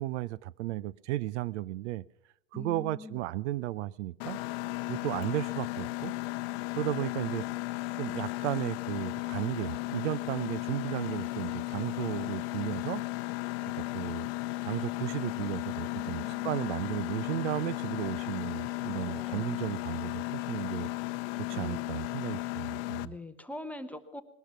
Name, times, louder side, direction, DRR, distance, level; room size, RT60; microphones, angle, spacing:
voice 1, 0.0-2.0 2.5-4.4 4.9-6.1 6.7-7.5 8.0-13.0 13.6-14.3 14.6-20.9 21.4-23.1, right 15 dB, 70° right, 23 dB, 0.6 m, -34 dB
voice 2, 2.5-3.2 19.0-19.7 21.5-22.1 23.0-24.2, left 2 dB, 5° left, 7 dB, 0.9 m, -44 dB
Mechanisms, 4.2-23.1, left 19 dB, 55° left, 0.7 m, -35 dB
20.0 x 12.0 x 5.9 m, 0.77 s
supercardioid pair, 130°, 36 cm